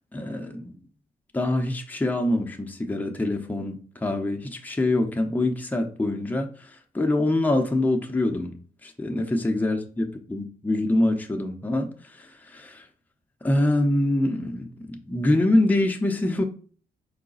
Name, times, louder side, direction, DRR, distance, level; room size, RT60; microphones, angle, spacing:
voice 1, 0.1-0.8 1.3-8.5 8.8-12.9 13.4-16.4, left 1 dB, 10° left, 0.7 m, -25 dB
4.8 x 2.2 x 3.8 m
cardioid pair, 95°, 15 cm